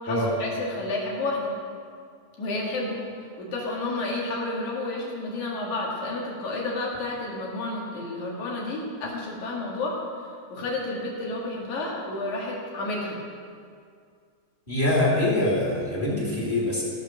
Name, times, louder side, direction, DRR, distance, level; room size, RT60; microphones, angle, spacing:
voice 1, 0.0-1.5 2.4-3.0 3.4-10.0 10.5-13.2, left 2 dB, 70° left, -3 dB, 3.4 m, -30 dB
voice 2, 14.7-16.8, left 1 dB, 15° left, -5 dB, 2.6 m, -24 dB
17.0 x 5.8 x 6.4 m, 2.2 s
omnidirectional pair, 3.5 m